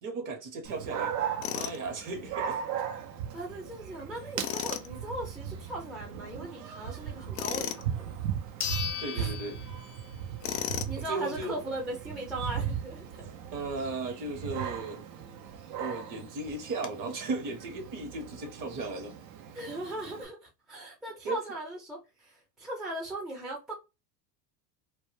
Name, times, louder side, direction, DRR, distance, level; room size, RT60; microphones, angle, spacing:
voice 1, 0.0-1.1 1.5-2.6 8.7-8.8 9.0-9.6 11.0-11.5 13.5-15.0 15.8-19.1 21.2-21.4, right 3 dB, 40° right, 0.9 m, -36 dB
Dog, 0.6-20.2, right 8 dB, 70° right, 0.7 m, -38 dB
Tools, 1.4-1.8 4.4-4.9 7.3-7.8 10.4-11.0, left 11 dB, 85° left, 0.6 m, -34 dB
voice 2, 3.3-8.2 9.2-9.3 10.9-13.2 19.5-23.7, right 1 dB, ahead, 0.5 m, -38 dB
sound 1, 7.8-7.9 8.6-10.4 10.7-10.8 15.5-15.6 15.8-15.9 16.4-16.9, left 9 dB, 40° left, 0.7 m, -37 dB
2.2 x 2.2 x 3.1 m
hypercardioid pair, 105°, 49 cm